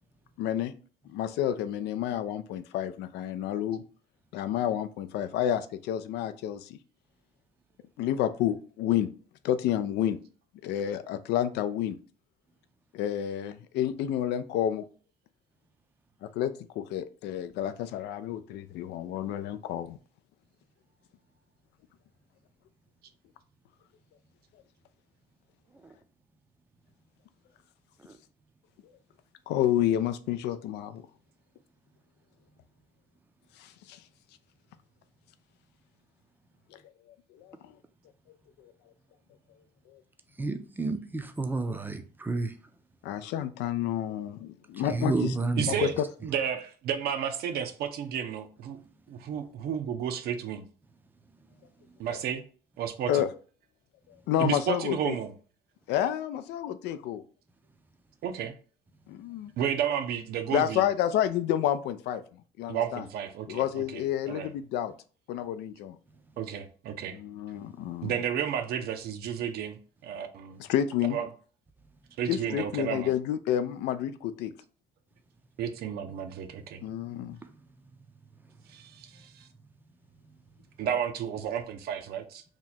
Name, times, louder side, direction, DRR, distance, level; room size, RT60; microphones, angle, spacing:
voice 1, 0.4-0.7 1.1-3.8 4.3-6.8 8.0-9.1 9.4-10.2 10.6-12.0 12.9-14.8 16.2-20.0 29.5-31.0 33.6-34.0 36.7-36.8 37.4-37.7 38.6-38.7 39.9-40.0 43.0-45.3 45.7-46.0 53.1-53.3 54.3-55.1 55.9-57.2 59.1-59.5 60.5-63.1 63.5-64.9 65.3-66.0 67.1-68.1 70.6-71.2 72.3-74.5 76.8-77.4, left 11 dB, 80° left, 0.4 m, -30 dB
voice 2, 40.4-42.5 44.7-45.8 76.8-76.9 77.4-77.6 80.2-80.3, right 3 dB, 10° right, 0.4 m, -31 dB
voice 3, 45.6-45.9 46.2-48.8 49.1-50.6 52.0-52.4 52.8-53.3 54.4-55.3 58.2-58.6 59.6-60.8 62.7-64.0 64.3-64.5 66.4-67.2 68.0-70.6 71.1-71.3 72.2-73.1 75.6-76.8 78.7-79.5 80.8-82.4, right 8 dB, 65° right, 0.6 m, -32 dB
2.9 x 2.3 x 4.0 m
cardioid pair, 110°, 17 cm